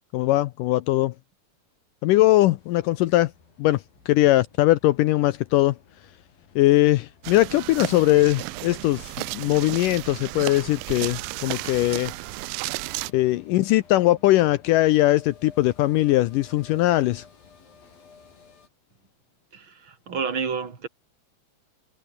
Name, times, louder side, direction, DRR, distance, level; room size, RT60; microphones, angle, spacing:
voice 1, 0.1-1.1 2.0-3.3 3.6-5.8 6.6-12.1 13.1-17.3, left 16 dB, 80° left, 1.9 m, -20 dB
sound 1, 2.6-18.7, left 5 dB, 65° left, 7.1 m, -54 dB
sound 2, 7.2-13.1, right 22 dB, 85° right, 2.0 m, -33 dB
voice 2, 19.5-20.9, right 6 dB, 35° right, 3.3 m, -30 dB
omnidirectional pair, 4.5 m